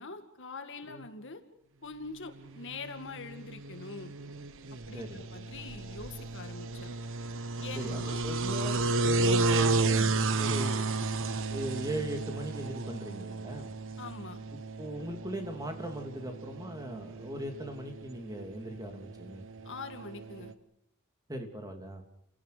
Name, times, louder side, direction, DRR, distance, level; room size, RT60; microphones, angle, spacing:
voice 1, 0.0-1.4 1.8-4.1 4.9-6.9 7.6-8.2 14.0-14.4 19.6-20.5, left 3 dB, 60° left, 7 dB, 2.1 m, -43 dB
sound 1, 2.5-20.5, right 3 dB, 60° right, 1.2 m, -33 dB
voice 2, 7.7-10.9 11.5-13.7 14.8-19.5 21.3-22.0, right 1 dB, 15° right, 4 dB, 2.9 m, -39 dB
30.0 x 18.0 x 6.8 m, 0.79 s
head